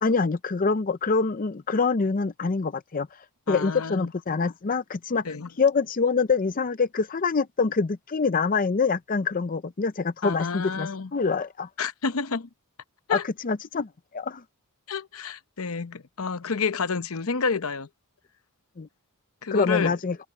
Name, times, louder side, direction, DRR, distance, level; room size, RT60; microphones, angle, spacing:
voice 1, 0.0-3.1 3.5-5.2 5.6-11.7 13.1-13.9 14.1-14.4 18.8-18.9 19.5-20.2, left 4 dB, 40° left, 0.5 m, -25 dB
voice 2, 3.5-4.1 5.2-5.5 10.2-11.1 11.8-12.5 13.1-13.2 14.9-17.9 19.4-19.9, left 5 dB, 70° left, 0.8 m, -29 dB
head